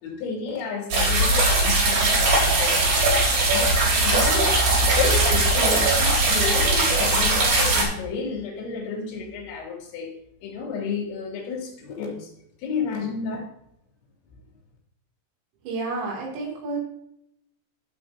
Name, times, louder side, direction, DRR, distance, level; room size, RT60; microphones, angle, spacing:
voice 1, 0.0-10.1 10.4-12.3 12.6-13.5, left 5 dB, 75° left, -1 dB, 5.3 m, -31 dB
sound 1, 0.9-7.8, right 2 dB, 50° right, 4.4 m, -20 dB
voice 2, 15.7-16.8, right 3 dB, 85° right, -2 dB, 5.7 m, -30 dB
15.5 x 6.9 x 2.8 m, 0.77 s
omnidirectional pair, 6.0 m